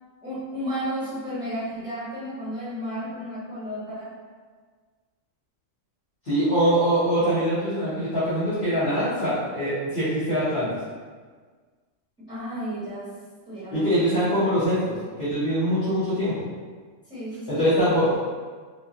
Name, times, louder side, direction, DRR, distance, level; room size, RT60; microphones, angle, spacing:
voice 1, 0.2-4.1 12.3-13.1 13.5-14.0 17.1-17.7, equal, 5° right, -13 dB, 1.3 m, -33 dB
voice 2, 6.2-10.7 13.7-16.5 17.5-18.2, equal, 50° left, -12 dB, 1.0 m, -23 dB
2.5 x 2.4 x 2.8 m, 1.5 s
omnidirectional pair, 1.3 m